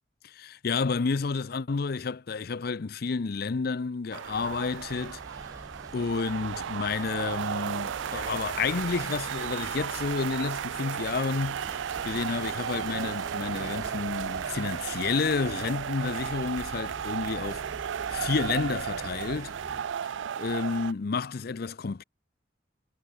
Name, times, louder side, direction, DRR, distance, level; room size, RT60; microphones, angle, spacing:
voice 1, 0.2-5.2 5.9-17.6 18.1-19.6 20.4-22.0, left 4 dB, 55° left, 0.5 m, -30 dB
sound 1, 4.1-20.9, right 8 dB, 80° right, 0.4 m, -34 dB
sound 2, 4.2-20.0, right 1 dB, 20° right, 3.4 m, -46 dB
head